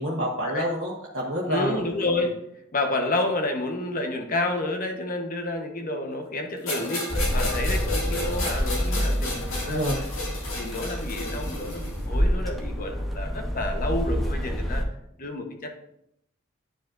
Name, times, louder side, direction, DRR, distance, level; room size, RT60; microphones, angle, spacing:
voice 1, 0.0-1.8 9.6-10.0, equal, 70° right, -5 dB, 1.2 m, -28 dB
voice 2, 1.5-2.3 2.7-9.8 10.5-14.8 15.2-15.7, left 2 dB, 45° left, 4 dB, 1.0 m, -29 dB
sound 1, 6.7-12.0, left 2 dB, 85° left, 2.1 m, -33 dB
sound 2, 7.1-14.8, equal, ahead, 0.8 m, -28 dB
10.5 x 5.0 x 2.5 m, 0.77 s
head